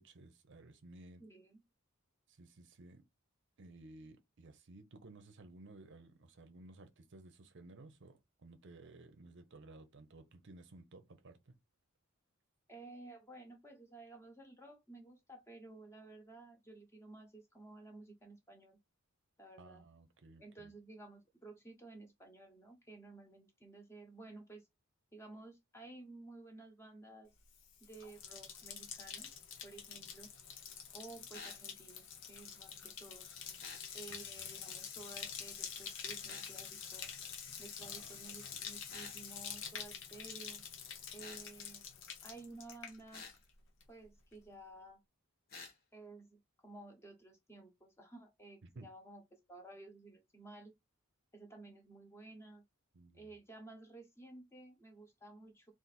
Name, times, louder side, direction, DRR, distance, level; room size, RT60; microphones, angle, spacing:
voice 1, 0.0-1.2 2.3-3.0 3.6-11.5 19.6-20.7 34.1-34.2 37.8-38.6 38.9-39.0 48.6-48.9 52.9-53.3, right 2 dB, 60° right, 0.7 m, -56 dB
voice 2, 1.2-1.6 12.7-18.8 19.4-19.8 20.4-24.6 25.1-27.3 27.8-29.3 29.6-30.3 30.9-33.3 33.9-37.1 37.6-40.6 41.1-41.8 42.2-43.2 43.9-45.0 45.9-50.7 51.3-52.6 53.1-55.7, right 2 dB, 10° left, 1.0 m, -54 dB
Bathtub (filling or washing), 27.4-43.5 43.8-44.3, left 7 dB, 60° left, 0.8 m, -47 dB
sound 1, 31.3-31.6 33.6-33.9 36.3-36.5 38.9-39.2 41.2-41.5 43.1-43.4 45.5-45.7, left 4 dB, 45° left, 1.1 m, -49 dB
4.0 x 2.6 x 4.2 m
head